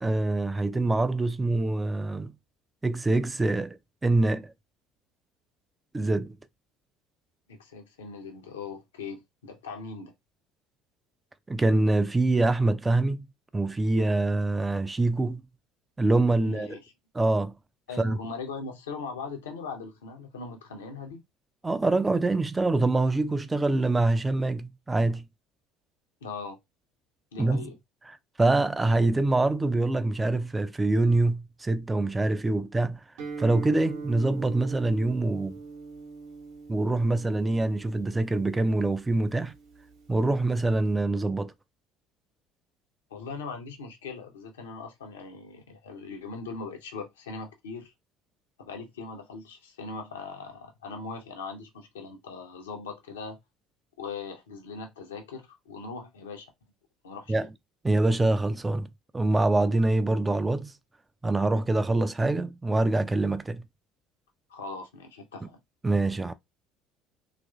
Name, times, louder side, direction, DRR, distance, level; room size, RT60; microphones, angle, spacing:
voice 1, 0.0-2.3 2.8-4.5 5.9-6.4 11.5-13.3 13.5-15.4 16.0-16.8 17.1-17.5 18.0-18.2 21.6-25.3 27.4-27.7 28.4-33.0 33.4-35.6 36.7-39.5 40.1-41.5 57.3-57.5 57.8-58.9 59.1-60.7 61.2-63.7 65.8-66.3, right 2 dB, 15° right, 0.3 m, -25 dB
voice 2, 7.5-10.1 16.4-16.9 17.9-21.2 26.2-26.6 27.3-27.8 43.1-47.9 48.6-53.4 54.0-56.5 57.0-57.5 64.5-65.6, left 4 dB, 75° left, 0.6 m, -40 dB
Guitar, 33.2-40.9, right 4 dB, 60° right, 0.8 m, -42 dB
2.9 x 2.5 x 2.3 m
figure-of-eight pair, 60°, 0 cm